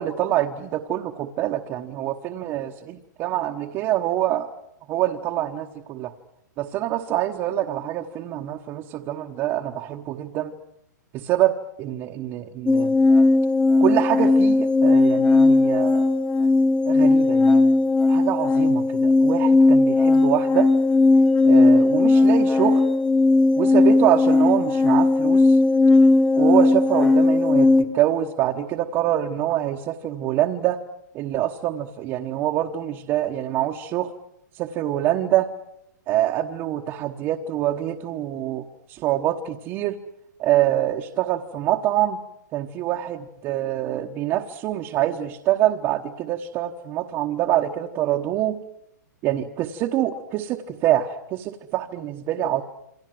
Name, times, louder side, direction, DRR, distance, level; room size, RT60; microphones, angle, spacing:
voice 1, 0.0-4.5 4.9-6.1 6.6-10.5 11.1-12.9 13.8-16.0 16.9-17.7 18.1-20.7 21.4-22.8 23.6-25.6 26.4-30.8 31.1-34.1 34.5-35.5 36.1-40.0 40.4-42.2 42.5-48.6 49.2-52.6, right 13 dB, 20° right, 2 dB, 1.1 m, -25 dB
sound 1, 12.7-27.8, left 2 dB, 5° left, 1.1 m, -17 dB
28.0 x 24.0 x 7.7 m, 0.78 s
hypercardioid pair, 165°, 10 cm